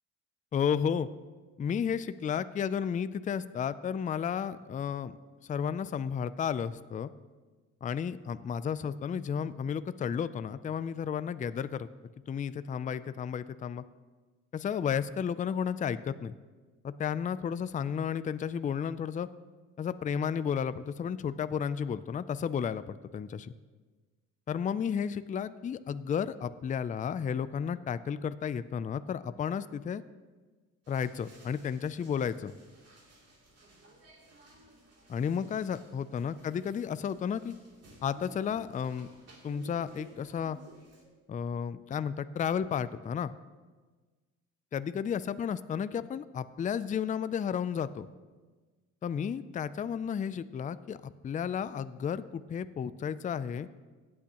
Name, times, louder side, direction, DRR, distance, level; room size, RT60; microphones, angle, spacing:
voice 1, 0.5-1.1 1.6-5.1 5.4-7.1 7.8-11.9 12.3-13.8 14.5-16.3 16.8-19.3 19.8-23.5 24.5-30.0 30.9-32.5 35.1-37.5 38.0-39.1 39.4-40.6 41.3-43.3 44.7-48.1 49.0-53.7, left 7 dB, 25° left, 14 dB, 0.4 m, -33 dB
sound 1, 30.8-41.0, right 1 dB, 55° right, 2.9 m, -56 dB
16.5 x 8.7 x 3.0 m, 1.3 s
cardioid pair, 90°, 30 cm